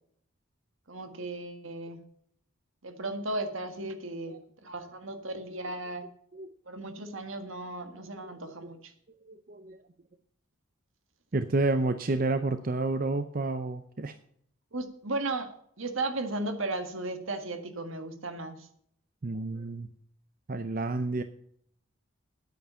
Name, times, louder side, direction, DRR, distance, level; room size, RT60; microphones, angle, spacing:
voice 1, 0.9-2.0 2.8-6.0 6.7-8.9 14.7-15.5 15.8-18.7, right 2 dB, 75° right, 7 dB, 1.7 m, -35 dB
voice 2, 9.3-9.8 11.3-14.1 19.2-19.9 20.5-21.2, right 2 dB, 40° right, 9 dB, 0.6 m, -30 dB
10.0 x 9.2 x 5.6 m, 0.66 s
head